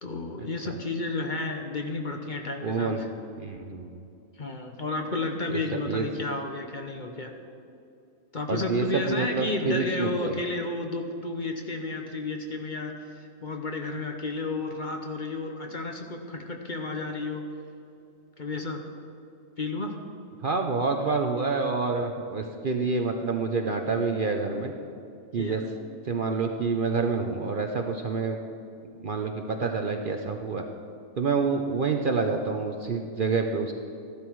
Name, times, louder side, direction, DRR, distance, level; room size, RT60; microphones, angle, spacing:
voice 1, 0.0-3.1 4.4-7.3 8.3-17.5 18.4-18.8 19.6-20.0 25.4-25.6, left 2 dB, 40° left, 3 dB, 0.9 m, -32 dB
voice 2, 2.6-3.0 3.4-3.9 5.5-6.1 8.5-10.4 20.4-24.7 25.3-25.6 26.0-28.4 29.0-30.6 31.2-33.7, right 4 dB, 50° right, 4 dB, 0.7 m, -27 dB
14.5 x 12.0 x 4.7 m, 2.6 s
omnidirectional pair, 1.4 m